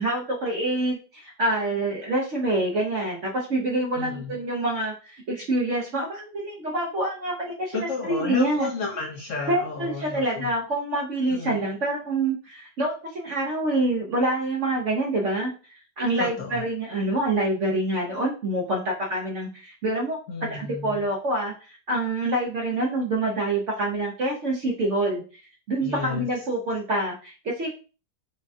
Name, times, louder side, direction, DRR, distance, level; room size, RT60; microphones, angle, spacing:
voice 1, 0.0-8.7 9.5-25.4 25.7-27.7, right 1 dB, 60° right, -1 dB, 0.8 m, -26 dB
voice 2, 3.9-4.4 7.7-10.5 11.3-11.7 16.2-16.6 20.3-21.1 25.8-26.3, left 4 dB, 55° left, -2 dB, 1.0 m, -32 dB
5.4 x 2.3 x 2.6 m, 0.36 s
omnidirectional pair, 1.9 m